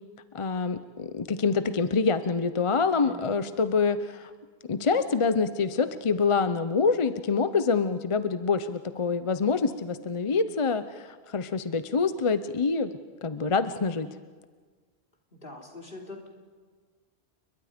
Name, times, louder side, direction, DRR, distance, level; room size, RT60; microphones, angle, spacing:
voice 1, 0.3-4.3 4.7-12.9 13.2-14.1, left 5 dB, 35° left, 11 dB, 0.6 m, -26 dB
voice 2, 3.0-3.4 15.3-16.3, left 1 dB, 50° left, 1 dB, 3.3 m, -43 dB
30.0 x 22.0 x 5.1 m, 1.5 s
omnidirectional pair, 1.2 m